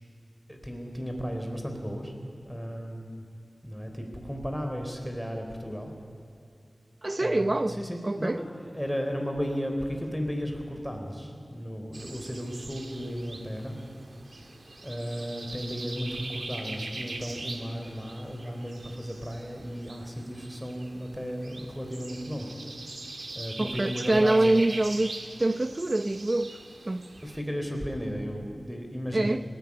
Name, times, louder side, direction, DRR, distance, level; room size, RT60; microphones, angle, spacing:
voice 1, 0.5-2.1 2.4-3.3 3.6-5.9 7.2-13.8 14.8-22.5 23.3-24.5 27.2-29.4, equal, ahead, 3.8 m, -34 dB
voice 2, 7.0-7.8 8.0-8.4 23.6-26.5 26.9-27.0 29.1-29.4, right 2 dB, 40° right, 0.7 m, -25 dB
sound 1, 11.9-27.4, right 2 dB, 60° right, 1.8 m, -42 dB
19.0 x 16.0 x 9.7 m
wide cardioid pair, 55°, 0 cm